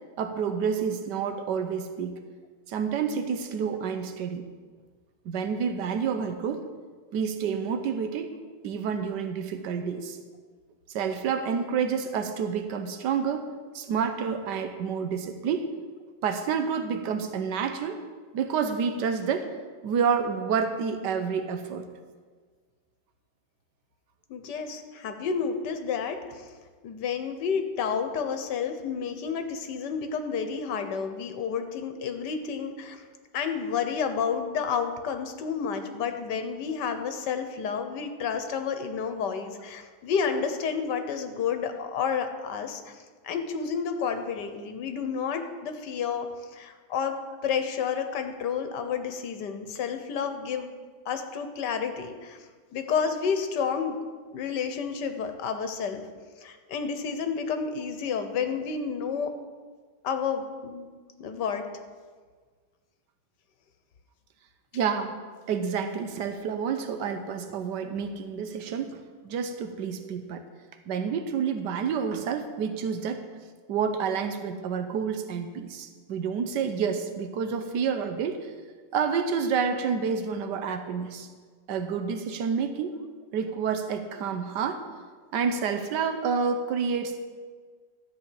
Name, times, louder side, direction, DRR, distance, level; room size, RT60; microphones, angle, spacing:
voice 1, 0.2-2.1 2.7-4.4 5.2-6.6 7.1-8.3 8.6-10.2 10.9-13.5 13.7-15.7 16.2-18.0 18.3-19.5 19.8-21.9 64.7-65.1 65.5-70.4 70.9-73.3 73.7-78.5 78.9-81.3 81.7-82.9 83.3-84.8 85.3-87.2, right 6 dB, 90° right, 8 dB, 1.4 m, -29 dB
voice 2, 24.3-26.5 26.8-33.0 33.3-46.3 46.5-47.1 47.4-50.7 51.0-52.4 52.7-54.0 54.3-56.0 56.4-59.3 60.0-60.9 61.2-61.6, left 6 dB, 85° left, 7 dB, 1.6 m, -30 dB
13.0 x 5.1 x 8.4 m, 1.5 s
omnidirectional pair, 1.8 m